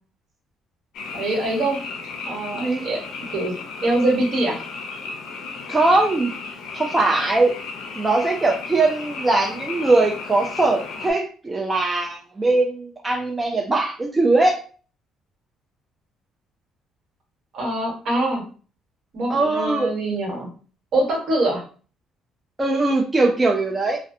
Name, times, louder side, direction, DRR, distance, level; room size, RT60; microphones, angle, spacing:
Frog, 0.9-11.1, left 4 dB, 75° left, 0.5 m, -35 dB
voice 1, 1.1-1.8 2.3-3.0 3.3-4.6 17.5-18.4 19.1-20.5 20.9-21.6, right 1 dB, 55° right, -1 dB, 1.1 m, -24 dB
voice 2, 2.5-2.8 5.7-6.3 6.7-7.5 8.0-14.6 19.3-19.9 22.6-24.0, right 2 dB, 15° right, 0 dB, 0.3 m, -20 dB
2.4 x 2.1 x 2.6 m, 0.39 s
cardioid pair, 130°, 0 cm